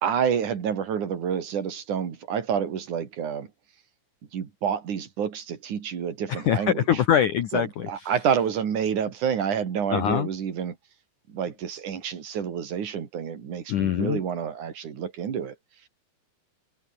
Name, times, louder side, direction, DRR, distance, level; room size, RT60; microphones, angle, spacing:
voice 1, 0.0-3.5 4.3-6.8 7.5-10.8 11.3-15.6, right 7 dB, 50° right, 3.7 m, -28 dB
voice 2, 6.3-8.1 9.9-10.3 13.7-14.2, left 10 dB, 65° left, 2.1 m, -24 dB
omnidirectional pair, 5.1 m